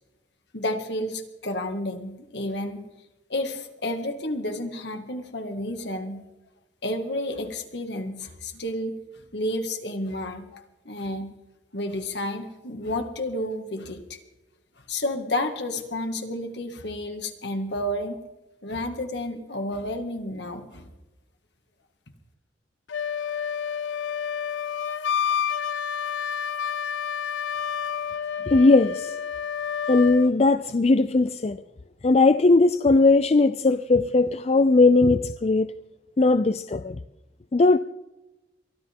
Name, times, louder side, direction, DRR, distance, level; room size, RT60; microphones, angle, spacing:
voice 1, 0.5-2.9 3.3-6.2 6.8-8.9 9.3-11.3 11.7-14.2 14.9-18.2 18.6-20.9, left 1 dB, 65° left, 2.1 m, -31 dB
Wind instrument woodwind instrument, 22.9-30.3, left 8 dB, 90° left, 0.6 m, -29 dB
voice 2, 28.5-29.1 29.9-31.6 32.0-35.7 36.2-37.0 37.5-37.8, left 3 dB, 35° left, 0.4 m, -19 dB
23.0 x 14.0 x 3.7 m
head